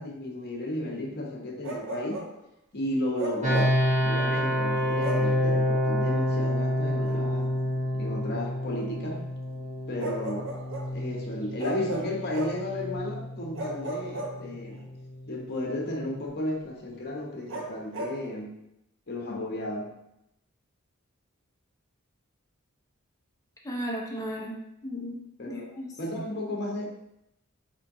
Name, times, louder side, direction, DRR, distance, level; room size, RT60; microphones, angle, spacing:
voice 1, 0.0-2.3 2.7-3.7 4.0-7.5 7.9-9.2 9.9-10.5 10.9-14.8 15.3-18.5 19.1-19.9 25.4-25.7 26.0-26.9, left 1 dB, 50° left, 0 dB, 0.9 m, -33 dB
Bark, 1.6-2.4 3.2-3.9 5.0-5.4 7.0-7.2 10.0-11.0 11.6-12.7 13.5-14.8 17.5-18.2, right 2 dB, 65° right, 0.6 m, -36 dB
sound 1, 3.4-16.2, equal, 35° right, 0.9 m, -29 dB
voice 2, 23.6-24.6 24.8-26.0, equal, 15° left, -1 dB, 0.7 m, -35 dB
4.5 x 3.5 x 2.7 m, 0.81 s
head